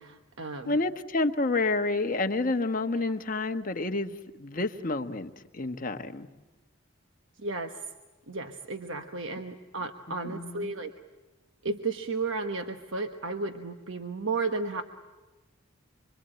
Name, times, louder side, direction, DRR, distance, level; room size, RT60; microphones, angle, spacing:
voice 1, 0.0-0.8 3.0-3.1 7.4-7.7 8.3-10.9 11.6-14.8, right 3 dB, 65° right, 6 dB, 1.2 m, -33 dB
voice 2, 0.6-6.3 10.2-10.7, left 2 dB, 40° left, 5 dB, 1.2 m, -29 dB
25.5 x 25.0 x 8.9 m, 1.2 s
head